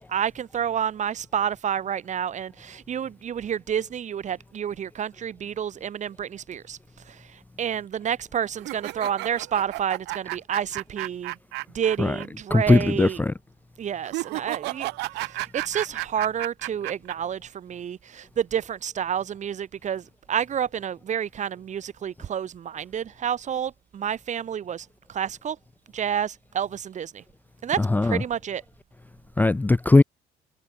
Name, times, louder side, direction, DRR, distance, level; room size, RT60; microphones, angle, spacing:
voice 1, 0.1-6.8 7.1-11.4 11.7-13.2 13.8-14.9 15.1-25.6 25.9-27.2 27.6-28.6, right 9 dB, 45° right, 1.7 m, -29 dB
sound 1, 8.6-12.3 12.5-12.6 14.0-17.1, right 22 dB, 90° right, 0.6 m, -33 dB
voice 2, 12.5-13.3 27.8-28.2 29.4-30.0, left 2 dB, 10° left, 0.5 m, -19 dB
cardioid pair, 110°, 17 cm